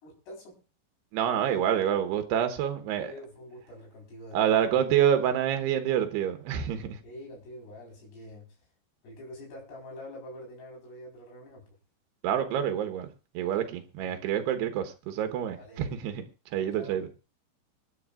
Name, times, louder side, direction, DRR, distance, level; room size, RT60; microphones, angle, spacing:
voice 1, 0.0-0.6 1.3-1.6 1.9-2.1 3.0-4.8 7.0-8.5 9.0-11.6 14.0-14.2 15.6-15.9 16.5-17.0, equal, 80° left, 6.8 m, -46 dB
voice 2, 1.1-3.1 4.3-7.0 12.2-13.1 13.3-16.2 16.5-17.1, right 9 dB, 85° right, 3.3 m, -27 dB
25.5 x 9.9 x 2.5 m
omnidirectional pair, 4.6 m